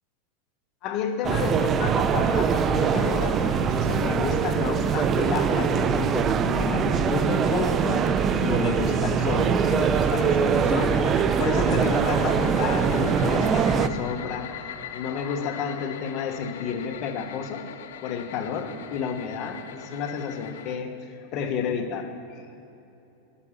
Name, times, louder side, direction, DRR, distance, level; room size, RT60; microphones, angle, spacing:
voice 1, 0.8-8.1 8.4-17.7 18.0-22.4, left 6 dB, 45° left, 5 dB, 1.4 m, -31 dB
sound 1, 1.2-13.9, right 6 dB, 25° right, 0.5 m, -23 dB
sound 2, 6.9-20.8, left 10 dB, 85° left, 0.7 m, -42 dB
11.0 x 8.4 x 9.8 m, 2.9 s
supercardioid pair, 140°, 0 cm